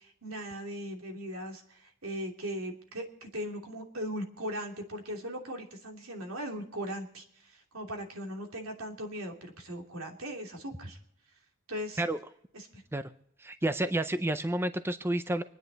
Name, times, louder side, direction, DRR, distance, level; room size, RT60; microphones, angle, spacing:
voice 1, 0.0-11.0 11.7-12.0 12.5-12.8, equal, 85° right, 1 dB, 2.9 m, -39 dB
voice 2, 13.4-15.4, right 1 dB, 10° right, 11 dB, 0.5 m, -30 dB
26.0 x 9.9 x 4.0 m, 0.71 s
head